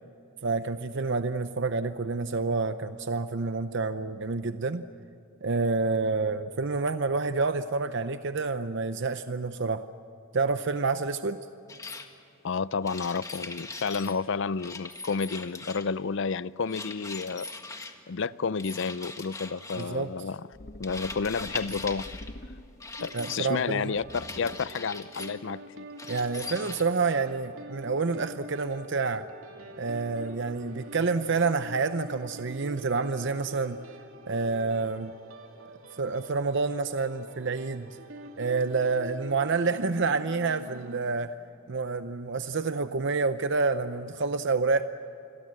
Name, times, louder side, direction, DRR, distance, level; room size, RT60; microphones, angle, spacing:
voice 1, 0.4-4.8 5.4-9.8 10.3-11.4 19.8-20.1 23.1-23.9 26.1-29.3 29.8-33.8 34.3-35.1 36.0-37.9 38.4-41.3 41.7-44.9, right 4 dB, 60° right, 0.7 m, -28 dB
sound 1, 11.7-12.1 12.8-14.2 14.6-16.0 16.7-17.9 18.6-19.9 20.8-22.3 22.8-23.4 24.1-25.4 26.0-26.8, left 3 dB, 15° left, 1.6 m, -40 dB
voice 2, 12.4-17.5 18.1-20.5 20.8-22.0 23.0-25.9, left 5 dB, 60° left, 0.5 m, -31 dB
sound 2, 20.5-23.0 23.9-24.9, left 1 dB, 45° left, 1.0 m, -45 dB
sound 3, 23.0-41.0, right 1 dB, 75° right, 2.5 m, -46 dB
28.0 x 22.0 x 7.7 m
head